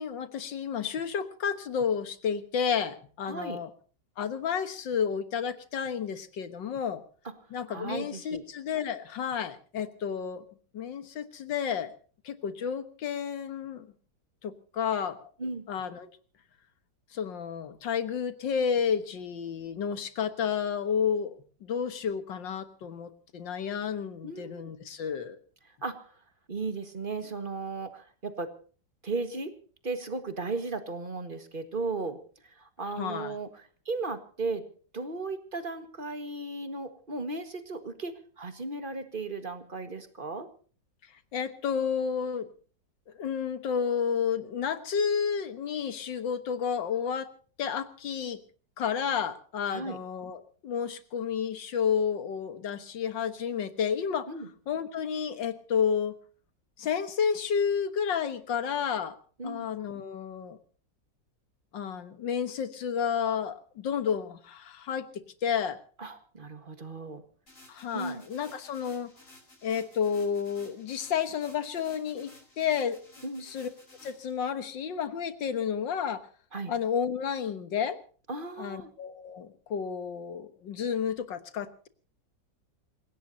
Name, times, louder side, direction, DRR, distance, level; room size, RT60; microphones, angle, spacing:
voice 1, 0.0-3.7 4.2-7.0 7.5-10.4 10.7-12.0 12.2-13.9 14.4-15.3 15.7-16.1 17.1-25.4 33.0-33.4 41.3-42.5 43.2-47.3 47.6-48.4 48.8-54.3 54.7-56.2 56.8-59.2 59.4-60.6 61.7-65.1 65.4-65.8 67.7-69.1 69.6-73.0 73.4-73.7 74.0-76.3 76.7-78.0 78.6-81.9, left 7 dB, 75° left, 10 dB, 2.1 m, -31 dB
voice 2, 3.3-3.6 7.7-8.4 15.4-15.7 24.2-24.7 25.8-26.1 26.5-28.5 29.0-29.5 29.8-32.2 32.6-33.5 33.9-34.6 34.9-40.5 49.7-50.0 54.3-54.5 59.4-59.7 66.0-67.2 67.9-68.2 73.2-73.5 76.5-76.7 78.3-78.9, right 3 dB, 30° right, 8 dB, 1.7 m, -35 dB
sound 1, 67.5-74.3, left 2 dB, 40° left, 5.8 m, -55 dB
27.5 x 17.0 x 2.8 m, 0.40 s
omnidirectional pair, 2.0 m